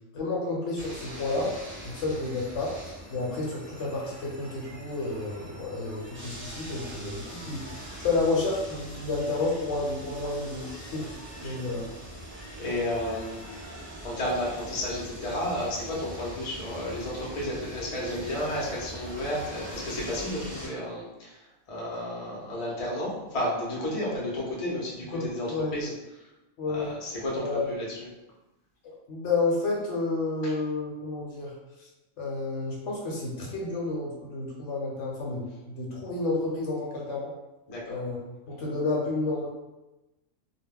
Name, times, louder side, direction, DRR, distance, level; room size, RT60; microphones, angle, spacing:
voice 1, 0.1-1.5 1.8-11.1 11.4-11.9 25.1-25.7 26.6-26.9 27.4-27.7 28.8-31.5 31.8-31.9 32.2-37.3 37.9-38.2 38.5-39.5, left 3 dB, 65° left, -2 dB, 0.9 m, -30 dB
sound 1, 0.8-20.7, right 1 dB, 15° right, 0.4 m, -42 dB
voice 2, 12.6-13.7 14.0-26.3 26.7-28.0 30.4-30.6 37.7-38.0, left 1 dB, 40° left, -5 dB, 0.6 m, -32 dB
2.2 x 2.1 x 3.5 m, 1.0 s
omnidirectional pair, 1.4 m